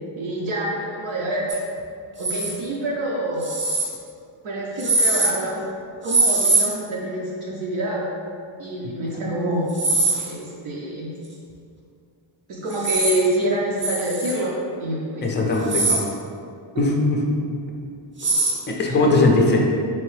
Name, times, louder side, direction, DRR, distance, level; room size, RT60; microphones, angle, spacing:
voice 1, 0.2-1.5 2.2-3.5 4.4-5.6 6.0-8.1 8.6-9.9 10.3-11.1 12.5-14.5 14.8-15.6 18.9-19.0, right 1 dB, 80° right, -5 dB, 0.8 m, -26 dB
sound 1, 1.5-1.6 2.2-2.5 3.4-3.9 4.8-5.3 6.1-6.6 9.7-10.3 12.7-13.2 13.8-14.3 15.5-16.0 18.2-18.5, right 2 dB, 25° right, 0.6 m, -21 dB
voice 2, 15.2-16.1 16.8-17.2 18.7-19.7, left 2 dB, 25° left, 0 dB, 0.4 m, -19 dB
4.4 x 3.1 x 3.2 m, 2.3 s
wide cardioid pair, 165°, 47 cm